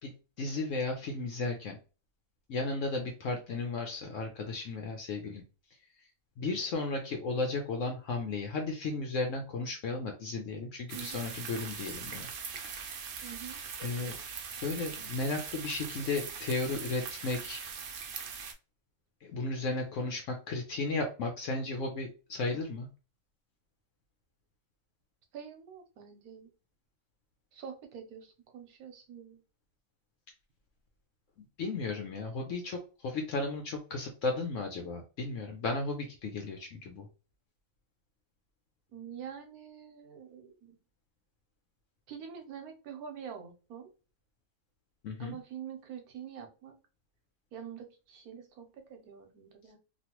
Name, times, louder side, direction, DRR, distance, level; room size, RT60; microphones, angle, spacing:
voice 1, 0.0-1.8 2.5-5.4 6.4-12.3 12.6-13.0 13.8-14.2 14.6-17.6 19.2-22.9 31.6-37.1 45.0-45.4, left 3 dB, 70° left, 3 dB, 0.9 m, -34 dB
sound 1, 10.9-18.5, right 6 dB, 65° right, 0.5 m, -41 dB
voice 2, 10.9-11.3 13.2-13.6 25.3-26.5 27.5-29.4 38.9-40.8 42.1-43.9 45.2-46.8 47.5-49.8, right 8 dB, 90° right, 5 dB, 1.2 m, -46 dB
3.1 x 2.4 x 2.9 m, 0.33 s
omnidirectional pair, 1.5 m